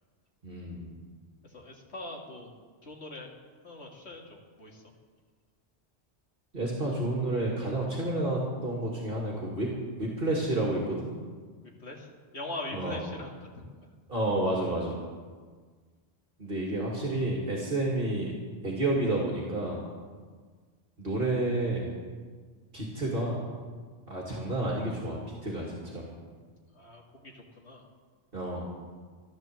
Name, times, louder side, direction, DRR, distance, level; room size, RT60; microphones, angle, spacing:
voice 1, 0.4-1.0 6.5-9.7 10.0-11.1 12.7-13.0 14.1-15.0 16.4-18.4 18.6-19.9 21.0-22.0 22.7-23.4 24.1-26.1 28.3-28.7, right 1 dB, 55° right, -2 dB, 2.5 m, -30 dB
voice 2, 1.4-2.5 2.8-3.3 3.6-4.9 11.8-12.1 12.3-13.8 26.7-27.9, left 2 dB, 80° left, 0 dB, 2.6 m, -42 dB
13.0 x 12.5 x 7.7 m, 1.5 s
omnidirectional pair, 1.1 m